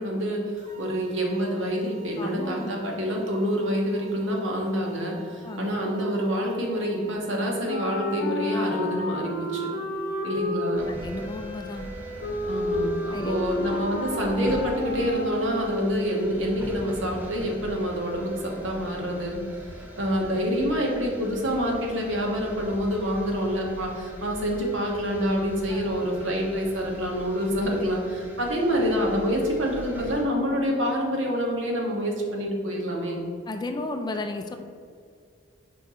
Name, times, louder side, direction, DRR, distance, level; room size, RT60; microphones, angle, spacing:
voice 1, 0.0-9.7 10.2-10.9 12.5-19.4 20.0-33.2, equal, 80° right, -1 dB, 1.2 m, -27 dB
sound 1, 0.6-7.8, right 6 dB, 40° right, 1.1 m, -50 dB
voice 2, 2.2-2.7 5.4-5.7 10.9-11.9 13.1-13.3 25.7-26.0 33.5-34.6, left 2 dB, 20° left, 6 dB, 0.3 m, -34 dB
Wind instrument woodwind instrument, 7.6-15.9, left 1 dB, 50° left, 0.8 m, -31 dB
sound 2, 10.7-30.2, equal, 10° right, 0.9 m, -42 dB
4.6 x 3.7 x 5.5 m, 2.1 s
head